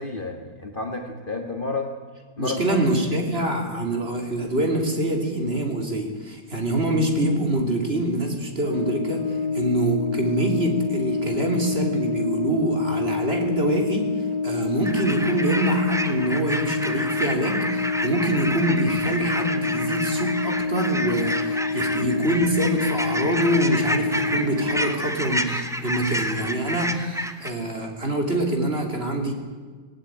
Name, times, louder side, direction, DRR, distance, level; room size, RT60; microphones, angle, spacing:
voice 1, 0.0-1.9 2.4-2.8, left 2 dB, 30° left, 4 dB, 1.9 m, -30 dB
voice 2, 2.4-14.1 14.4-29.3, right 1 dB, 35° right, 3 dB, 3.4 m, -25 dB
Brass instrument, 8.6-25.0, left 4 dB, 90° left, 2.1 m, -27 dB
sound 1, 14.8-27.5, equal, ahead, 1.1 m, -29 dB
18.5 x 18.5 x 9.0 m, 1.5 s
omnidirectional pair, 1.8 m